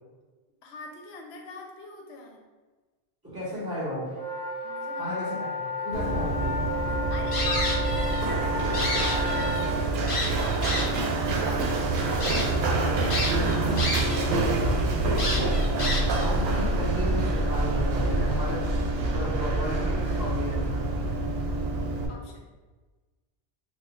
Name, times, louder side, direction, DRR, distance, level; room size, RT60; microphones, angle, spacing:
voice 1, 0.6-2.4 4.6-5.3 5.8-6.1 6.8-10.0 14.1-14.5 22.1-22.5, left 3 dB, 75° left, 1 dB, 0.9 m, -43 dB
voice 2, 3.2-4.1 5.0-6.5 12.7-13.8 16.2-18.7 19.1-20.8, left 1 dB, 20° right, -9 dB, 1.5 m, -34 dB
sound 1, 4.1-9.7, left 1 dB, 10° left, 1.2 m, -32 dB
Run, 5.9-22.1, right 2 dB, 70° right, 0.8 m, -26 dB
sound 2, 7.3-8.3 8.6-9.6 10.1-11.1 11.6-11.7 12.2-12.4 13.1-14.3 14.6-14.7 15.2-16.3, left 2 dB, 40° left, 0.5 m, -30 dB
4.2 x 2.2 x 2.5 m, 1.3 s
omnidirectional pair, 1.1 m